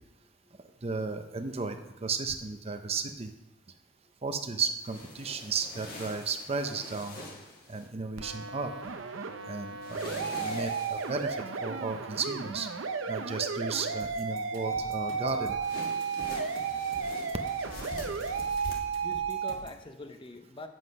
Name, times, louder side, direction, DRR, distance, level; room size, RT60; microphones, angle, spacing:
voice 1, 0.8-3.3 4.2-7.2 7.7-8.7 9.5-12.7 13.1-15.6, right 4 dB, 30° right, 7 dB, 0.6 m, -34 dB
sound 1, 4.8-7.9 9.8-11.3 15.6-18.7, left 1 dB, 45° left, 1.6 m, -44 dB
sound 2, 8.2-19.5, right 5 dB, 80° right, 0.8 m, -33 dB
sound 3, 14.0-19.8, right 2 dB, 60° right, 1.6 m, -49 dB
voice 2, 18.7-20.7, left 2 dB, 25° left, 7 dB, 0.7 m, -46 dB
8.1 x 7.7 x 5.3 m, 0.94 s
head